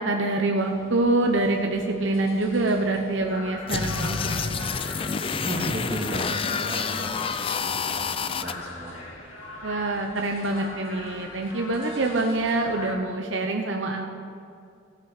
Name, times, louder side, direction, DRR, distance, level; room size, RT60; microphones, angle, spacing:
voice 1, 0.0-4.7 9.6-14.1, right 2 dB, 70° right, 2 dB, 0.9 m, -25 dB
sound 1, 0.6-12.9, left 2 dB, 85° left, 2.7 m, -42 dB
sound 2, 3.7-8.5, left 5 dB, 25° left, 0.3 m, -28 dB
voice 2, 5.3-9.1, right 1 dB, 30° right, -1 dB, 1.8 m, -35 dB
16.5 x 5.9 x 6.5 m, 2.4 s
head